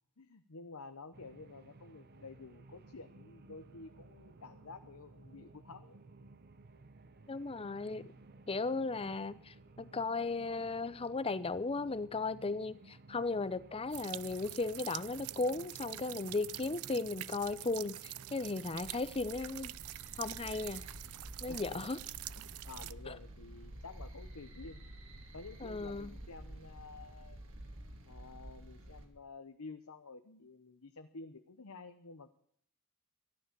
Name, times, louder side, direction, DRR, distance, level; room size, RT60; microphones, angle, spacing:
voice 1, 0.2-6.0 21.5-21.9 22.4-24.9 25.3-27.4 28.1-32.3, left 3 dB, 85° left, 0.9 m, -51 dB
sound 1, 1.1-18.8, right 2 dB, 45° right, 0.8 m, -57 dB
voice 2, 7.3-8.1 8.5-19.7 20.2-20.8 21.4-22.0 23.1-23.2 25.6-26.1, left 3 dB, 25° left, 0.6 m, -36 dB
sound 2, 13.9-22.9, right 15 dB, 85° right, 0.5 m, -46 dB
sound 3, 18.7-29.1, right 1 dB, 65° right, 2.7 m, -50 dB
14.0 x 12.0 x 6.8 m
head